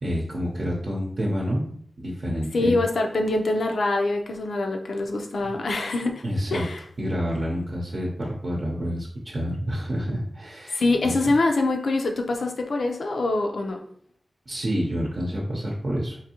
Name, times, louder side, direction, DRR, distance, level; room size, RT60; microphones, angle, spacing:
voice 1, 0.0-2.8 6.2-6.7 7.0-11.1 14.5-16.2, equal, 55° right, -3 dB, 0.7 m, -28 dB
voice 2, 2.5-6.2 6.5-6.8 10.7-13.8, left 2 dB, 80° left, 3 dB, 0.5 m, -24 dB
3.8 x 2.7 x 2.8 m, 0.63 s
wide cardioid pair, 60°, 0 cm